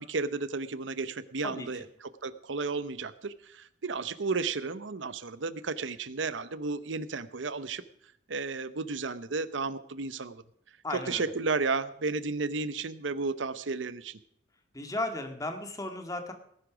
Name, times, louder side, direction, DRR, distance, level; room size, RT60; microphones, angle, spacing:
voice 1, 0.0-7.8 8.3-10.4 10.9-14.2, right 4 dB, 80° right, 15 dB, 0.8 m, -33 dB
voice 2, 10.8-11.3 14.7-16.3, left 2 dB, 20° left, 6 dB, 1.9 m, -35 dB
19.0 x 11.0 x 5.1 m, 0.71 s
head